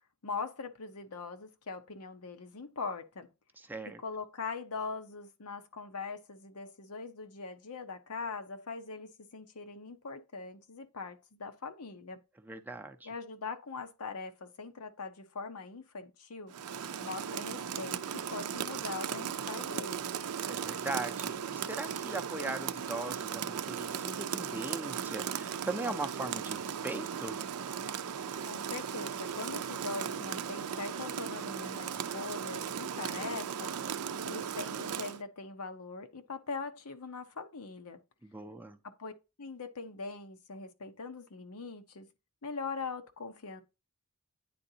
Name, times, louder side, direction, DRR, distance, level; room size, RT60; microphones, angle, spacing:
voice 1, 0.2-3.3 4.0-12.2 13.0-16.5 17.0-18.0 18.3-20.1 28.4-33.8 34.3-38.0 38.8-39.1 39.4-42.1 42.4-43.6, left 4 dB, 85° left, 0.9 m, -41 dB
voice 2, 3.6-4.0 12.4-13.1 20.5-27.4 38.2-38.8, right 2 dB, 10° right, 0.5 m, -39 dB
Rain, 16.5-35.2, right 7 dB, 90° right, 0.5 m, -37 dB
9.5 x 3.8 x 2.7 m
head